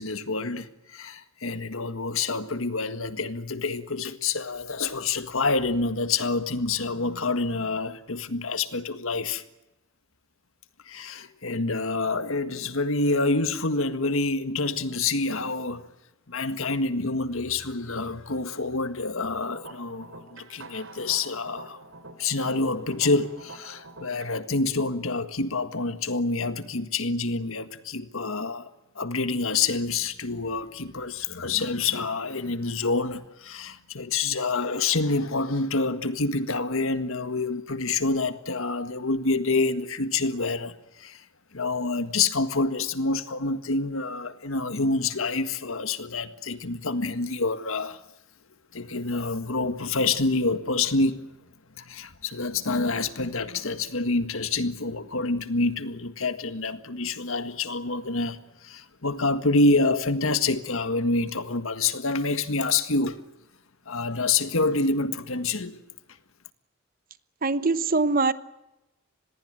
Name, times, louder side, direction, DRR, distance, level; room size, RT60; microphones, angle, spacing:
voice 1, 0.0-9.4 10.9-15.9 16.3-21.8 22.2-28.7 29.0-41.2 41.5-48.0 48.7-51.3 51.8-63.2 63.9-65.8, left 3 dB, 70° left, 1.7 m, -27 dB
sound 1, 19.3-24.3, right 3 dB, 65° right, 3.5 m, -46 dB
voice 2, 67.4-68.3, right 3 dB, 40° right, 1.0 m, -22 dB
26.0 x 21.0 x 7.8 m
head